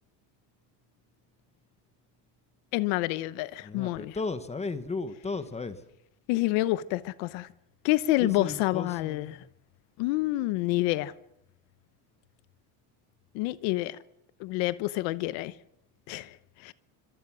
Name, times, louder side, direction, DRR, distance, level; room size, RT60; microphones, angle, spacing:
voice 1, 2.7-4.2 6.3-7.5 7.8-9.4 10.0-11.1 13.3-14.0 14.4-15.5 16.1-16.7, left 18 dB, 65° left, 1.0 m, -28 dB
voice 2, 3.6-5.8 8.2-9.5, left 3 dB, 15° left, 1.1 m, -35 dB
26.5 x 26.0 x 6.2 m
cardioid pair, 160°, 48 cm